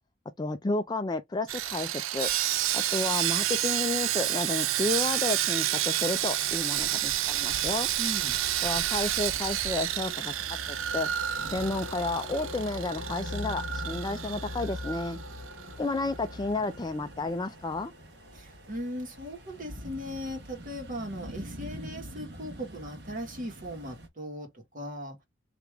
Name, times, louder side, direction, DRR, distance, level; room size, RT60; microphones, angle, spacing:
voice 1, 0.4-2.3 2.7-7.9 8.6-10.3 10.7-11.1 11.5-15.2 15.8-17.9, left 2 dB, 20° left, 0.4 m, -31 dB
Sawing, 1.5-15.7 16.0-16.2 16.6-16.8, right 12 dB, 80° right, 0.4 m, -30 dB
sound 1, 7.0-24.1, left 1 dB, 55° right, 1.3 m, -43 dB
voice 2, 8.0-8.4 18.3-25.2, equal, 40° right, 1.5 m, -38 dB
sound 2, 10.4-19.8, left 1 dB, 65° left, 0.8 m, -46 dB
3.3 x 2.9 x 3.4 m
head